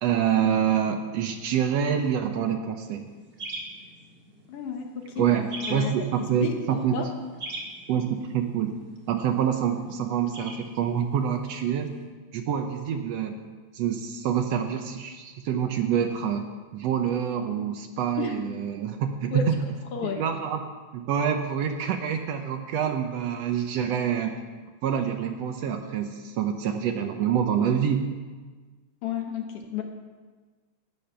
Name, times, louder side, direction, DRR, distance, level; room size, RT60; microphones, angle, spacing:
voice 1, 0.0-3.1 5.2-7.1 7.9-8.8 9.1-11.9 12.3-13.4 13.7-19.6 20.1-20.6 20.9-24.4 24.8-28.1, right 8 dB, 70° right, 6 dB, 1.7 m, -26 dB
sound 1, 2.8-12.1, right 2 dB, 30° right, 1.5 m, -43 dB
voice 2, 4.5-5.2 5.6-5.9 6.4-7.1 18.2-18.3 19.3-19.4 19.9-20.2 29.0-29.8, left 6 dB, 60° left, 3 dB, 1.7 m, -32 dB
12.0 x 9.8 x 5.7 m, 1.4 s
omnidirectional pair, 3.4 m